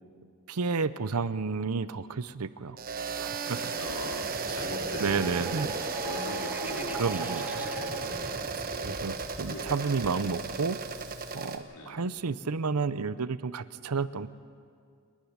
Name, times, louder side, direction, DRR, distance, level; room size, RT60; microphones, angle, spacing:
voice 1, 0.5-2.8 3.2-3.7 5.0-5.7 7.0-7.6 8.8-10.8 11.3-14.3, right 4 dB, 85° right, 15 dB, 0.7 m, -31 dB
sound 1, 2.8-11.6, right 4 dB, 40° right, 1.1 m, -35 dB
voice 2, 3.8-5.7 6.0-7.0 7.3-9.0 9.5-10.3 11.7-12.1, left 1 dB, 75° left, 2 dB, 2.7 m, -42 dB
sound 2, 3.8-11.4, right 1 dB, 10° right, 0.7 m, -42 dB
Water tap faucet / Sink (filling or washing) / Liquid, 6.1-11.6, right 9 dB, 65° right, 2.3 m, -53 dB
27.5 x 10.5 x 9.6 m, 2.2 s
head